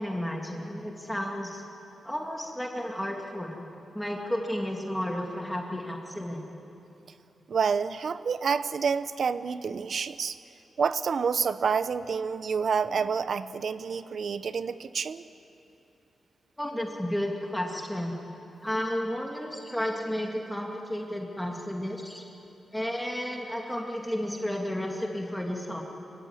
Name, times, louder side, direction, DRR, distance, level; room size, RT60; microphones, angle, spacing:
voice 1, 0.0-1.6 2.0-3.7 3.9-6.5 16.6-18.1 18.6-22.2 22.7-25.8, equal, 5° left, 0 dB, 2.5 m, -32 dB
voice 2, 7.5-10.4 10.8-15.2, right 6 dB, 60° right, 14 dB, 0.8 m, -28 dB
25.5 x 16.5 x 9.9 m, 2.9 s
cardioid pair, 90°, 0 cm